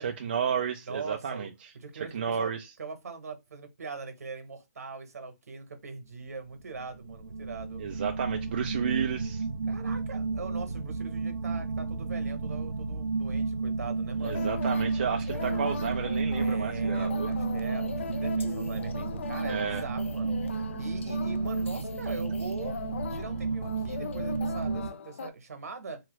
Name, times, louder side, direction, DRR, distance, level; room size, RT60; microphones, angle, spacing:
voice 1, 0.0-1.7 2.1-2.7 7.8-9.4 14.2-17.3 19.5-19.8, right 7 dB, 35° right, 0.4 m, -32 dB
voice 2, 0.9-1.5 1.7-7.8 9.7-14.4 15.0-16.0 16.4-22.8 23.1-26.0, right 4 dB, 65° right, 1.1 m, -42 dB
sound 1, 6.7-24.9, right 4 dB, 85° right, 0.6 m, -32 dB
sound 2, 14.2-25.3, left 6 dB, 45° left, 0.4 m, -40 dB
2.7 x 2.4 x 3.0 m
hypercardioid pair, 165°, 9 cm